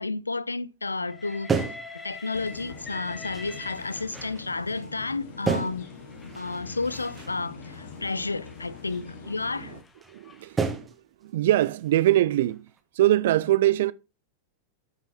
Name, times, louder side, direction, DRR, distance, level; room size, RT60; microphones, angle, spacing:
voice 1, 0.0-1.6 2.0-5.9 6.4-9.7, left 3 dB, 80° left, 0.5 m, -31 dB
Train, 1.0-4.4 5.3-10.5, left 4 dB, 15° left, 1.4 m, -46 dB
sound 1, 1.5-2.9 3.3-5.1 5.5-7.4 7.7-9.0 9.4-9.5 10.0-10.1 10.6-11.1 11.5-11.9 12.3-12.8, right 5 dB, 15° right, 1.7 m, -34 dB
sound 2, 2.3-9.8, left 4 dB, 60° left, 1.7 m, -43 dB
voice 2, 10.1-10.9 11.2-12.6 13.0-13.9, right 14 dB, 55° right, 0.4 m, -23 dB
11.0 x 5.8 x 4.1 m
figure-of-eight pair, 90°, 0 cm